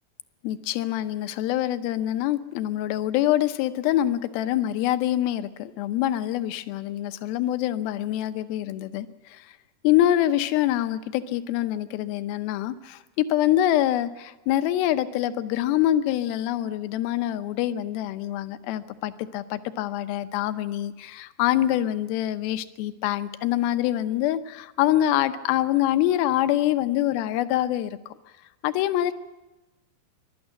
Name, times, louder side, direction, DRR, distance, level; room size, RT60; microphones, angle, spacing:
voice 1, 0.4-9.5 9.8-28.0 28.6-29.1, left 13 dB, 75° left, 11 dB, 2.5 m, -25 dB
24.5 x 12.5 x 9.9 m, 1.1 s
omnidirectional pair, 4.9 m